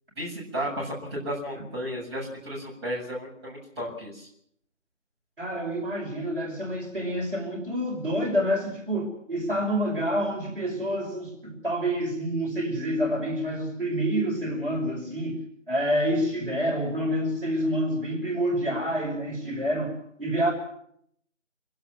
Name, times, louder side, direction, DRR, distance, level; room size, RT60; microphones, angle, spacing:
voice 1, 0.2-4.3, equal, 20° right, -4 dB, 7.5 m, -33 dB
voice 2, 5.4-15.4 15.7-20.5, equal, 45° right, 0 dB, 5.7 m, -28 dB
26.0 x 17.5 x 7.5 m, 0.69 s
figure-of-eight pair, 160°, 38 cm